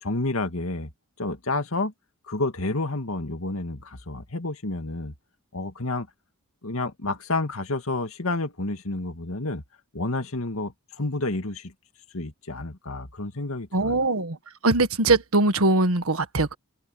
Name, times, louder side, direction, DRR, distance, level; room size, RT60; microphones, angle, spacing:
voice 1, 0.0-0.9 1.2-1.9 2.3-5.1 5.5-6.1 6.6-9.6 9.9-11.7 12.1-14.0, left 2 dB, 80° left, 2.1 m, -30 dB
voice 2, 13.7-14.4 14.6-16.5, right 2 dB, 85° right, 1.6 m, -21 dB
open air
head